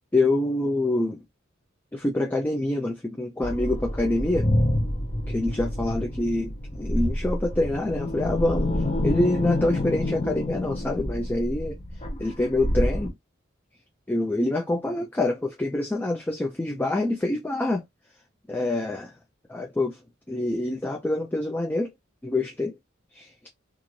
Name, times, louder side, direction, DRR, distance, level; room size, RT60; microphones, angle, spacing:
voice 1, 0.1-1.2 1.9-4.5 5.3-8.7 9.0-11.8 12.2-13.1 14.1-17.8 18.5-19.1 19.5-20.0 20.3-21.9 22.2-22.8 23.1-23.3, left 2 dB, 10° left, 0.4 m, -26 dB
sound 1, 3.4-13.1, left 1 dB, 30° left, 0.8 m, -27 dB
2.5 x 2.5 x 2.9 m
head